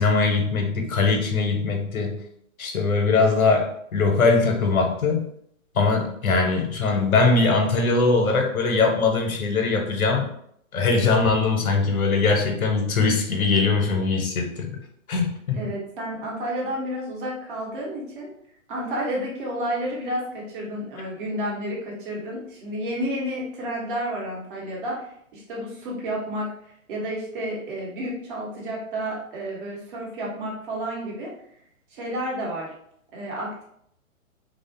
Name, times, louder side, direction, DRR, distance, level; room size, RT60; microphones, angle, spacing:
voice 1, 0.0-2.2 2.6-5.3 5.7-10.3 10.7-14.7 15.1-15.7, left 4 dB, 75° left, 3 dB, 0.7 m, -21 dB
voice 2, 15.5-18.3 18.7-31.3 31.9-32.7 33.1-33.6, equal, 40° right, -3 dB, 0.9 m, -31 dB
2.5 x 2.1 x 2.4 m, 0.69 s
figure-of-eight pair, 125°, 42 cm